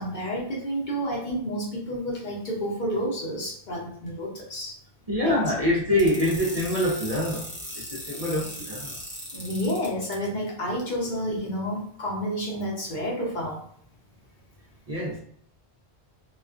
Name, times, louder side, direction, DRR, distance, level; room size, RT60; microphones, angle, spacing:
voice 1, 0.0-4.8 5.2-5.4 8.3-8.4 9.3-13.6, equal, 50° left, -3 dB, 0.8 m, -30 dB
voice 2, 5.1-7.4 7.8-9.0 14.9-15.2, left 1 dB, 50° right, -3 dB, 0.4 m, -25 dB
sound 1, 6.0-10.1, equal, 15° left, 0.5 m, -38 dB
2.3 x 2.2 x 2.3 m, 0.65 s
omnidirectional pair, 1.1 m